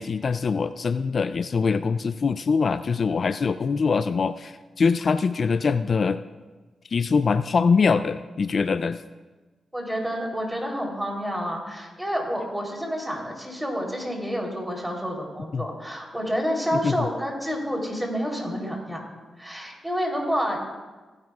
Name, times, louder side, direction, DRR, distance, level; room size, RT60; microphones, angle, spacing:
voice 1, 0.0-6.2 6.9-9.0 15.5-15.7 16.7-17.1, left 5 dB, 55° left, 12 dB, 0.3 m, -23 dB
voice 2, 9.7-19.0 19.4-20.6, equal, 10° right, 0 dB, 3.4 m, -29 dB
17.0 x 10.5 x 2.4 m, 1.3 s
cardioid pair, 55°, 0 cm